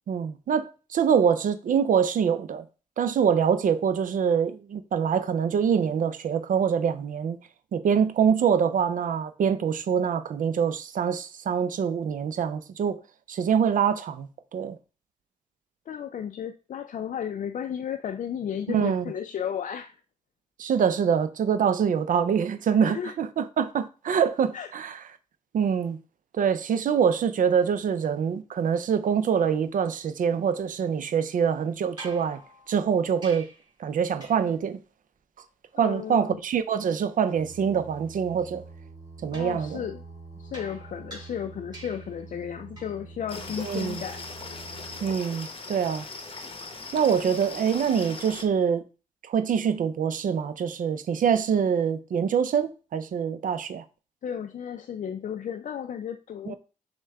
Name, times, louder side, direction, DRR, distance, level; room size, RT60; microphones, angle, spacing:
voice 1, 0.1-2.6 3.0-7.4 7.7-13.0 13.3-14.8 18.7-19.1 20.6-24.9 25.5-26.0 26.4-32.4 32.7-33.5 33.8-34.8 35.8-38.6 39.2-39.8 43.6-44.0 45.0-46.0 46.9-48.8 49.3-53.8 56.5-56.6, right 7 dB, 70° right, 0.5 m, -25 dB
voice 2, 15.9-19.9 22.7-23.2 24.5-24.7 35.7-36.4 39.3-40.0 40.4-44.3 54.2-56.5, left 8 dB, 60° left, 0.4 m, -34 dB
sound 1, 32.0-33.7 34.2-34.6 39.3-42.2 42.8-43.1 45.1-45.2, right 2 dB, 30° right, 2.3 m, -47 dB
Singing, 37.3-45.2, right 3 dB, 50° right, 1.5 m, -46 dB
sound 2, 43.3-48.4, left 3 dB, 40° left, 0.8 m, -39 dB
6.3 x 2.2 x 3.4 m
cardioid pair, 55°, 14 cm